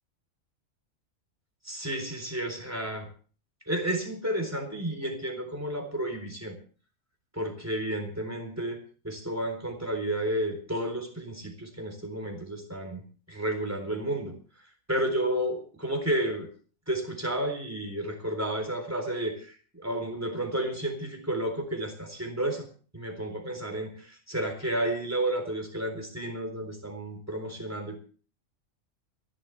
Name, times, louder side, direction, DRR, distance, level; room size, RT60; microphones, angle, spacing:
voice 1, 1.6-3.1 3.7-6.6 7.3-13.0 13.3-14.4 14.9-16.5 16.9-22.7 22.9-28.0, right 1 dB, 10° right, 4 dB, 3.8 m, -31 dB
28.5 x 12.0 x 3.4 m, 0.40 s
omnidirectional pair, 1.4 m